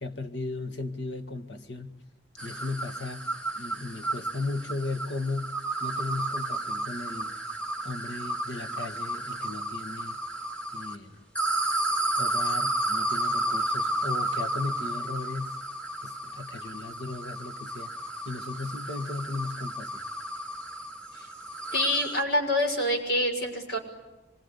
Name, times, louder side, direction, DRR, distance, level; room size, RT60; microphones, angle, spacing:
voice 1, 0.0-2.0 2.4-7.3 7.8-10.2 10.7-11.3 12.2-15.6 16.0-17.9 18.3-20.0, left 3 dB, 80° left, 1.9 m, -36 dB
sound 1, 2.4-11.0 11.4-22.2, right 1 dB, 5° left, 2.1 m, -32 dB
voice 2, 21.7-23.8, left 1 dB, 65° left, 6.3 m, -26 dB
26.0 x 23.0 x 10.0 m
head